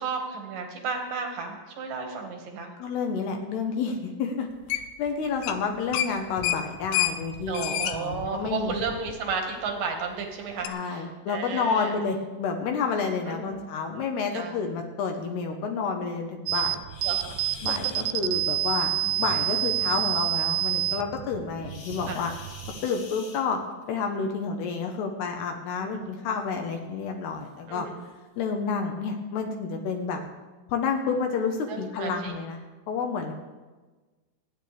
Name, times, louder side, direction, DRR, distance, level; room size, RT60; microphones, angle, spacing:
voice 1, 0.0-2.7 7.5-11.9 13.3-13.6 14.3-14.6 17.0-17.7 19.0-19.1 22.1-22.2 25.8-26.1 27.7-28.0 30.1-30.2 31.7-32.3, right 5 dB, 55° right, 3 dB, 2.7 m, -33 dB
voice 2, 2.8-8.7 10.7-16.8 17.6-22.3 22.8-23.6 23.9-27.9 28.4-30.2 30.7-32.6 32.9-33.3, left 5 dB, 70° left, 3 dB, 2.8 m, -30 dB
sound 1, 4.7-5.1 5.4-5.6 5.9-9.3 9.7-9.8 10.7-10.8, left 12 dB, 85° left, 3.4 m, -29 dB
sound 2, 16.5-22.9, right 14 dB, 85° right, 3.1 m, -28 dB
sound 3, 16.9-18.1 21.6-23.9 25.1-25.3 25.8-25.9 26.5-26.6 27.4-27.5 28.0-28.2, left 4 dB, 50° left, 2.3 m, -45 dB
28.5 x 10.0 x 3.5 m, 1.3 s
omnidirectional pair, 5.8 m